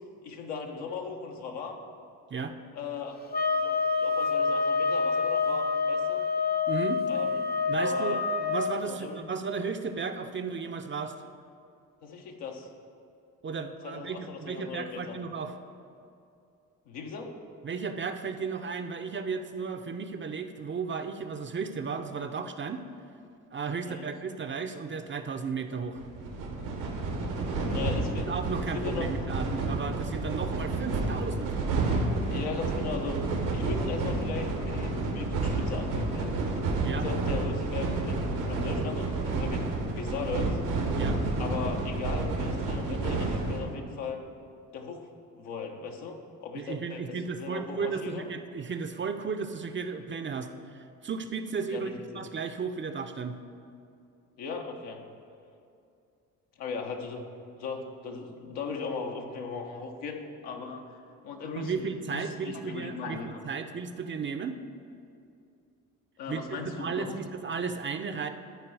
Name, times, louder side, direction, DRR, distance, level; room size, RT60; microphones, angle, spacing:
voice 1, 0.2-1.8 2.7-3.2 3.6-6.2 7.1-7.3 7.8-8.2 8.8-9.2 12.0-12.7 13.8-15.2 16.9-17.4 23.8-24.1 27.7-28.3 28.7-29.1 32.3-33.2 33.5-36.4 36.9-40.6 41.4-44.2 44.7-45.1 45.4-48.3 51.7-52.2 54.4-55.0 56.6-57.3 57.6-60.8 61.2-63.4 66.2-67.2, left 5 dB, 75° left, 2 dB, 1.1 m, -38 dB
sound 1, 3.3-8.7, left 4 dB, 25° left, 0.7 m, -27 dB
voice 2, 6.7-7.0 7.7-11.1 13.4-15.5 17.6-22.8 23.5-26.0 28.0-31.6 36.8-37.1 41.0-41.2 46.5-53.4 61.6-64.6 66.3-68.3, right 5 dB, 30° right, 7 dB, 0.6 m, -34 dB
sound 2, 26.0-43.6, right 3 dB, 85° right, 1.6 m, -30 dB
12.5 x 4.6 x 4.8 m, 2.5 s
hypercardioid pair, 55°, 40 cm